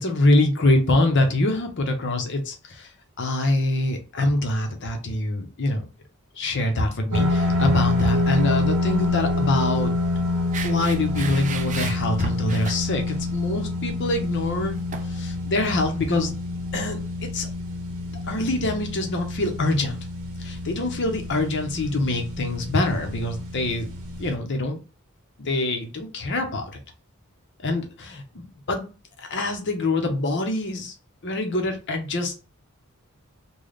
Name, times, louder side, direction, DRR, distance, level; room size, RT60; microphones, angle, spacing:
voice 1, 0.0-2.9 3.2-5.8 6.4-9.9 10.6-14.8 15.1-16.3 16.7-17.0 17.3-17.5 18.3-20.0 20.4-23.9 24.2-24.8 25.4-26.7 27.6-28.9 29.3-30.9 31.2-32.4, left 2 dB, 55° left, 4 dB, 0.8 m, -24 dB
sound 1, 7.1-24.3, left 2 dB, 65° right, 0.8 m, -27 dB
sound 2, 8.0-8.5 8.8-9.0 10.5-12.8 14.9-15.1, right 6 dB, 35° right, 0.4 m, -35 dB
3.3 x 2.3 x 3.9 m, 0.33 s
head